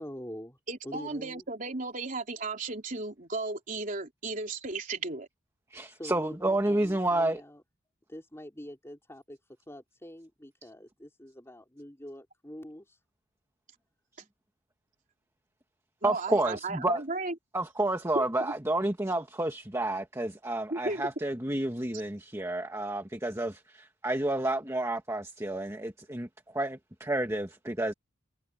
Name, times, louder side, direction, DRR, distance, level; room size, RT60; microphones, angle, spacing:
voice 1, 0.0-0.6 0.8-1.4 5.8-7.6 8.1-9.4 9.7-13.0, equal, 15° left, 4.0 m, -45 dB
voice 2, 0.7-5.3 16.0-17.3 18.2-18.5 20.7-21.0, right 3 dB, 40° right, 3.5 m, -34 dB
voice 3, 5.7-7.4 16.0-17.0 17.5-27.9, right 1 dB, 15° right, 1.5 m, -30 dB
head